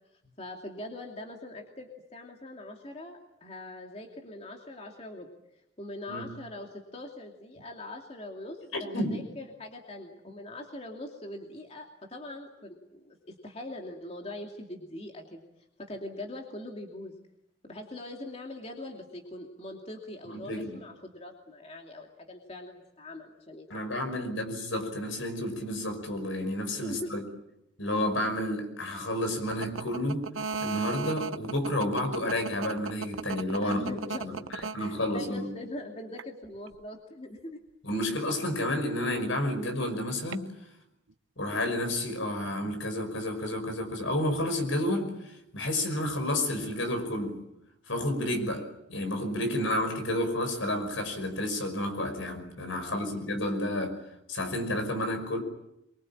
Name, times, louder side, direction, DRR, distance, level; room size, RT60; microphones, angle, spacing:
voice 1, 0.4-5.3 5.8-15.4 15.8-17.1 17.6-24.2 26.8-27.1 33.6-34.4 34.8-37.6 52.8-53.1, left 1 dB, 30° left, 1 dB, 2.6 m, -42 dB
voice 2, 8.7-9.2 20.3-20.8 23.7-27.2 27.8-30.3 30.6-35.5 37.8-40.5 41.4-47.4 47.9-54.0 54.3-55.4, left 1 dB, 70° left, 6 dB, 5.7 m, -31 dB
sound 1, 29.5-35.4 36.2-36.8 40.3-40.4, right 5 dB, 80° right, 0.9 m, -35 dB
25.0 x 23.5 x 8.8 m, 0.84 s
head